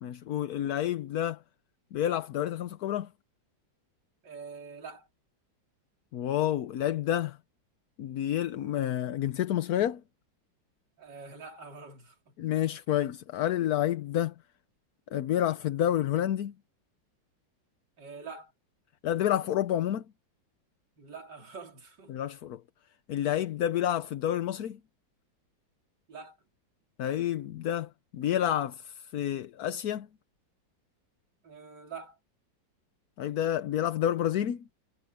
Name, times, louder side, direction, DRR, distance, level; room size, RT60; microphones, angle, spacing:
voice 1, 0.0-1.4 1.9-3.1 6.1-7.4 8.0-10.0 12.4-14.3 15.1-16.5 19.0-20.0 22.1-22.6 23.1-24.8 27.0-30.1 33.2-34.6, left 11 dB, 60° left, 1.1 m, -29 dB
voice 2, 4.2-5.1 11.0-12.4 12.9-13.0 18.0-18.5 21.0-22.1 26.1-26.4 31.4-32.2, right 5 dB, 65° right, 4.2 m, -45 dB
omnidirectional pair, 2.0 m